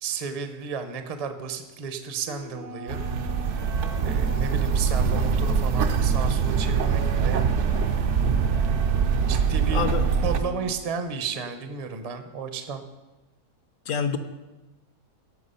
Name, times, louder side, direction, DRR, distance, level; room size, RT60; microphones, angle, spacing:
voice 1, 0.0-3.0 3.5-3.6 4.0-7.4 8.5-9.0 9.3-9.9 10.2-12.8, right 5 dB, 30° right, 8 dB, 0.7 m, -33 dB
sound 1, 2.3-10.7, equal, 80° right, 2.3 m, -42 dB
sound 2, 2.9-10.4, right 6 dB, 60° right, 1.0 m, -23 dB
voice 2, 9.7-10.1 13.9-14.2, left 7 dB, 65° left, 9 dB, 1.1 m, -26 dB
16.5 x 6.0 x 5.5 m, 1.1 s
omnidirectional pair, 1.6 m